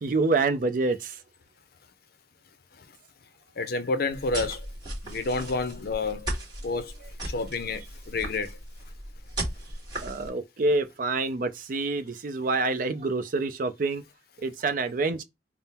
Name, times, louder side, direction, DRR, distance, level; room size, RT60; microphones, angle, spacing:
voice 1, 0.0-1.2 7.0-7.1 10.0-14.0 14.4-15.2, right 3 dB, 50° right, 0.5 m, -27 dB
voice 2, 3.6-4.6 5.0-6.3 6.6-6.9 7.3-8.5, left 3 dB, 55° left, 0.5 m, -29 dB
sound 1, 4.1-10.3, right 1 dB, 25° right, 1.5 m, -37 dB
3.6 x 2.0 x 4.1 m
head